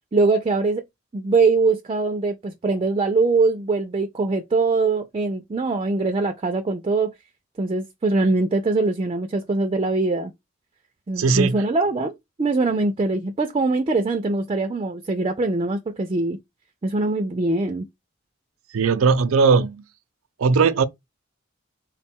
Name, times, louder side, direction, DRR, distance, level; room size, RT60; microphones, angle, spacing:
voice 1, 0.1-0.8 1.1-7.1 7.6-10.3 11.1-16.4 16.8-17.9, right 3 dB, 25° right, 0.3 m, -22 dB
voice 2, 11.2-11.6 18.7-19.8 20.4-20.8, right 5 dB, 90° right, 0.4 m, -18 dB
3.6 x 2.2 x 4.2 m
head